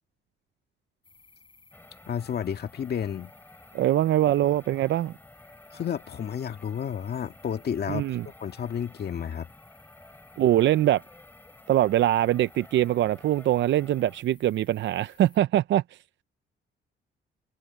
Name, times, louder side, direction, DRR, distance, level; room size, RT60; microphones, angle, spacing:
sound 1, 1.0-15.4, left 4 dB, 25° left, 7.2 m, -58 dB
sound 2, 1.7-14.2, left 1 dB, 10° left, 6.9 m, -52 dB
voice 1, 2.1-3.3 5.7-9.5, left 8 dB, 55° left, 1.9 m, -31 dB
voice 2, 3.7-5.1 7.9-8.3 10.4-11.0 11.7-15.8, right 13 dB, 65° right, 0.6 m, -23 dB
cardioid pair, 90°, 20 cm